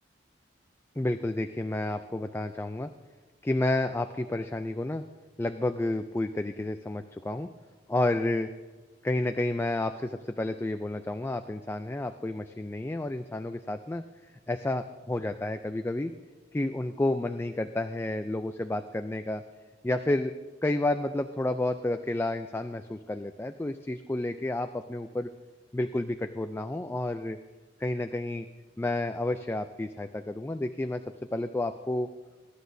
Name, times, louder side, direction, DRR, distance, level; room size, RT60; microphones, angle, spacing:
voice 1, 1.0-2.9 3.4-5.0 5.4-7.5 7.9-8.5 9.0-14.0 14.5-16.1 16.5-19.4 19.8-20.3 20.6-25.3 25.7-27.4 27.8-28.5 28.8-31.0 31.3-32.1, left 2 dB, 10° left, 7 dB, 0.3 m, -30 dB
21.5 x 11.5 x 2.7 m, 1.3 s
head